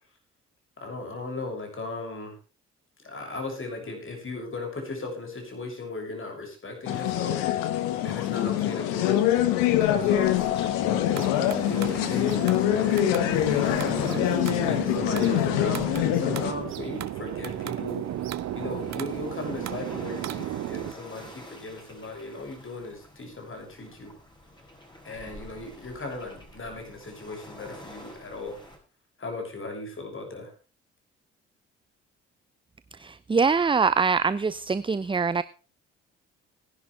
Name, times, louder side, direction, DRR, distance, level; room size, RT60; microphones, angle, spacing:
voice 1, 0.8-2.4 3.0-7.4 8.0-9.2 9.7-10.6 11.6-14.4 14.7-18.1 18.5-24.1 25.0-28.6 29.2-30.5, left 3 dB, 35° left, 3 dB, 6.6 m, -37 dB
sound 1, 6.9-16.5, left 12 dB, 70° left, 1.5 m, -24 dB
sound 2, 9.5-28.8, left 1 dB, 15° left, 6.8 m, -47 dB
sound 3, 10.8-20.9, right 13 dB, 50° right, 0.7 m, -35 dB
voice 2, 32.9-35.4, right 5 dB, 15° right, 16 dB, 0.6 m, -24 dB
18.5 x 11.0 x 3.3 m, 0.35 s
figure-of-eight pair, 45°, 35 cm